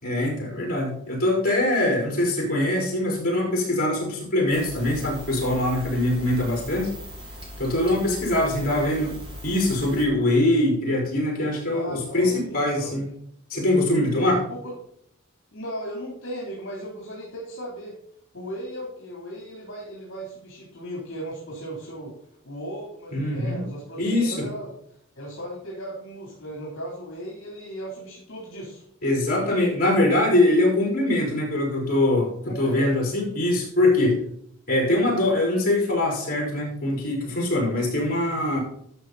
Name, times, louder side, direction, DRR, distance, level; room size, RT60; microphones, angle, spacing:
voice 1, 0.0-6.9 7.6-9.1 9.4-13.0 13.5-14.4 23.1-23.6 24.0-24.5 29.0-32.3 32.6-34.2 34.7-38.6, left 1 dB, 45° left, -1 dB, 4.9 m, -23 dB
sound 1, 4.5-10.1, left 1 dB, 25° right, 3.1 m, -40 dB
voice 2, 11.7-12.9 14.5-14.7 15.5-17.9 18.3-22.1 22.4-24.8 25.1-28.8 32.5-32.9, right 1 dB, 65° left, -3 dB, 3.4 m, -36 dB
12.5 x 6.4 x 4.1 m, 0.69 s
head